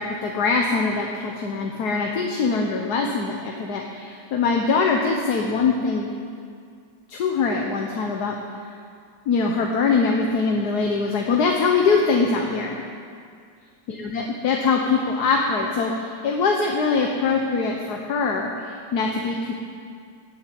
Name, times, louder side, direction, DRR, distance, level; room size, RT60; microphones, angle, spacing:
voice 1, 0.0-6.1 7.1-8.4 9.3-12.8 14.0-19.5, left 4 dB, 65° left, 1 dB, 1.6 m, -23 dB
18.5 x 7.6 x 7.7 m, 2.2 s
omnidirectional pair, 1.9 m